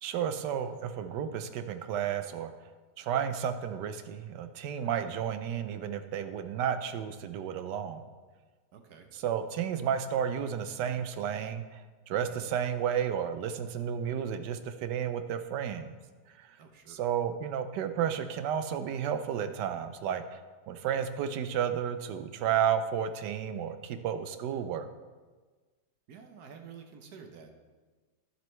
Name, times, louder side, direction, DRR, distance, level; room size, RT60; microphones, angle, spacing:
voice 1, 0.0-2.5 3.0-8.0 9.1-15.9 16.4-16.6 16.9-20.4 20.7-24.9, right 8 dB, 90° right, 9 dB, 1.3 m, -32 dB
voice 2, 8.7-9.1 12.2-12.5 16.6-17.0 26.1-27.5, right 6 dB, 70° right, 5 dB, 1.3 m, -50 dB
11.5 x 7.5 x 3.2 m, 1.3 s
omnidirectional pair, 1.8 m